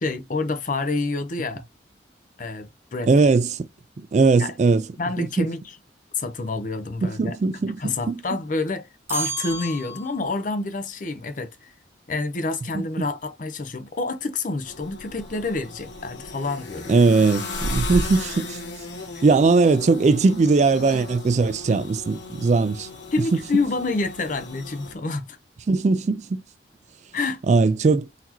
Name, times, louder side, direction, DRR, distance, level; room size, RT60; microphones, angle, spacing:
voice 1, 0.0-1.6 2.4-3.1 4.4-4.5 5.0-5.8 6.1-7.4 7.8-11.7 12.1-17.0 19.1-19.2 23.1-25.4 27.1-27.4, left 3 dB, 45° left, 0.6 m, -28 dB
voice 2, 3.1-3.7 4.1-4.8 5.2-5.5 7.0-7.9 12.7-12.8 16.9-18.6 19.2-22.9 25.7-26.4 27.5-28.1, right 4 dB, 40° right, 0.3 m, -19 dB
sound 1, 9.1-10.5, right 4 dB, 15° right, 0.9 m, -32 dB
sound 2, 14.6-24.9, left 1 dB, 80° left, 1.3 m, -35 dB
4.0 x 2.8 x 2.8 m
head